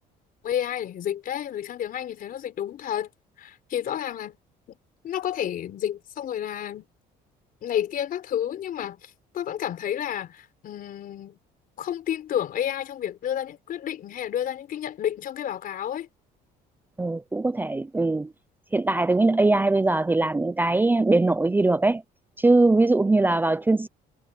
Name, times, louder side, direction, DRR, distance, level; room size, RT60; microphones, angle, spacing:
voice 1, 0.4-3.1 3.4-4.4 4.7-4.8 5.0-6.9 7.6-11.4 11.8-16.1, left 10 dB, 60° left, 4.0 m, -30 dB
voice 2, 17.0-18.3 18.7-22.0 22.4-23.9, right 2 dB, 10° right, 0.5 m, -21 dB
cardioid pair, 110°, 17 cm